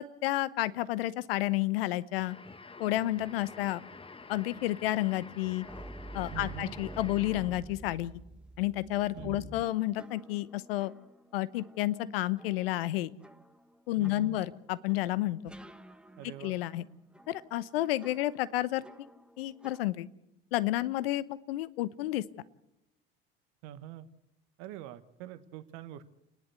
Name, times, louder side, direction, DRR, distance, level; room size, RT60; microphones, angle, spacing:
voice 1, 0.0-2.4 2.8-3.8 4.3-5.6 6.1-8.2 8.6-10.9 11.3-13.1 13.9-15.4 16.4-16.8 17.3-19.1 19.4-20.1 20.5-22.2, left 16 dB, 75° left, 18 dB, 0.9 m, -31 dB
sound 1, 2.2-7.7, left 3 dB, 20° left, 1.5 m, -49 dB
sound 2, 5.6-19.9, right 1 dB, 5° right, 1.3 m, -49 dB
voice 2, 6.3-6.7 9.1-9.5 14.0-14.4 16.2-16.5 23.6-24.1 24.6-26.1, right 12 dB, 65° right, 13 dB, 1.2 m, -44 dB
29.5 x 11.0 x 8.1 m, 0.85 s
hypercardioid pair, 70°, 29 cm